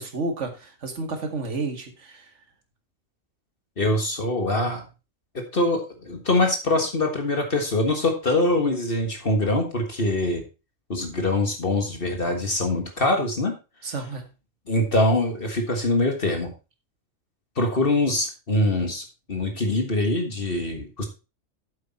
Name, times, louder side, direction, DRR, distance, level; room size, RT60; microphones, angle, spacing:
voice 1, 0.0-2.3 13.8-14.2, right 3 dB, 65° right, 5 dB, 2.1 m, -31 dB
voice 2, 3.8-4.8 5.3-10.4 10.9-13.5 14.7-16.5 17.6-21.1, left 2 dB, 45° left, 4 dB, 1.8 m, -23 dB
8.7 x 7.7 x 4.2 m, 0.29 s
omnidirectional pair, 1.4 m